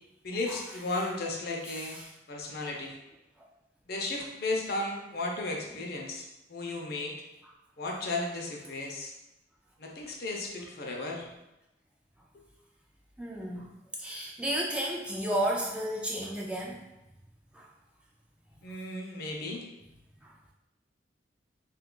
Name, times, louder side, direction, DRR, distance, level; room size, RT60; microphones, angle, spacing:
voice 1, 0.2-2.0 2.3-2.9 3.9-7.2 7.8-9.1 9.8-11.3 12.3-12.4 18.6-19.6, left 2 dB, 55° left, 0 dB, 0.6 m, -34 dB
voice 2, 13.2-13.7 14.0-16.8 17.5-17.7 20.2-20.3, right 1 dB, 5° right, -3 dB, 0.3 m, -32 dB
2.7 x 2.3 x 3.7 m, 0.94 s
head